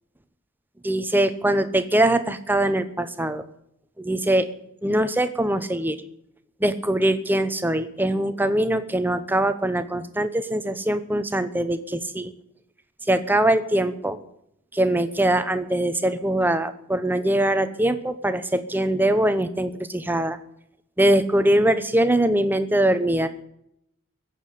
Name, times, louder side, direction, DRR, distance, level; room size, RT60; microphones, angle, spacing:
voice 1, 0.8-3.4 4.0-4.5 4.8-6.0 6.6-12.3 13.1-14.2 14.7-20.4 21.0-23.3, right 1 dB, 10° right, 11 dB, 0.9 m, -22 dB
17.0 x 7.7 x 8.4 m, 0.75 s
head